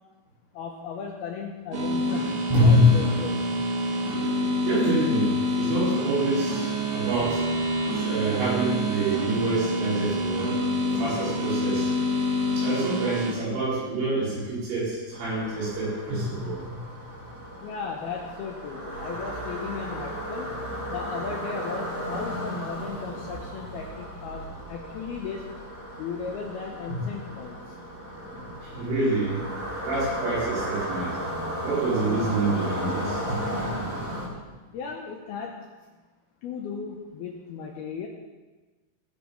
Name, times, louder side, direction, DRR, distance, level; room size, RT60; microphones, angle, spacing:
voice 1, 0.5-3.5 17.6-20.6 20.9-25.6 26.0-27.6 34.7-35.7 36.4-38.1, left 5 dB, 75° left, 0 dB, 2.4 m, -36 dB
sound 1, 1.7-13.3, equal, 55° right, 1.9 m, -27 dB
voice 2, 2.5-2.9 4.6-7.4 7.9-10.6 10.8-11.9 12.5-17.0 26.9-27.0 28.6-29.5 29.9-31.2 31.6-34.0, right 1 dB, 80° right, -9 dB, 7.4 m, -26 dB
sound 2, 15.1-34.3, equal, 20° right, 4.1 m, -35 dB
19.5 x 6.7 x 5.3 m, 1.2 s
omnidirectional pair, 5.6 m